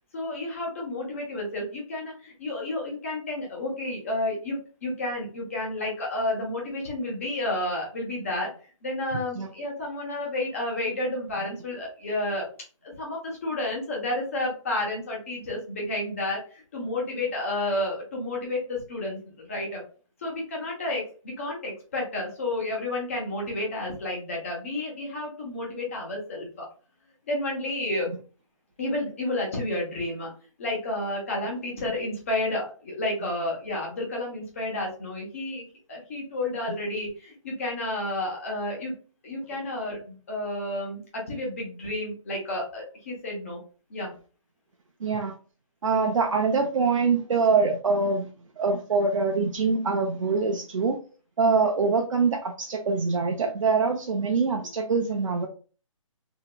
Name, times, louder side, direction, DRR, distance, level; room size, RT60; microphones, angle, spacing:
voice 1, 0.1-8.5 8.8-12.5 12.8-19.8 20.2-26.7 27.3-28.1 28.8-30.3 30.6-38.9 39.2-43.6 43.9-44.1, left 1 dB, 25° left, -2 dB, 0.9 m, -31 dB
voice 2, 45.0-45.3 45.8-48.3 48.6-51.0 51.4-55.5, right 4 dB, 70° right, 2 dB, 0.5 m, -24 dB
3.0 x 2.8 x 2.2 m, 0.37 s
hypercardioid pair, 175°, 17 cm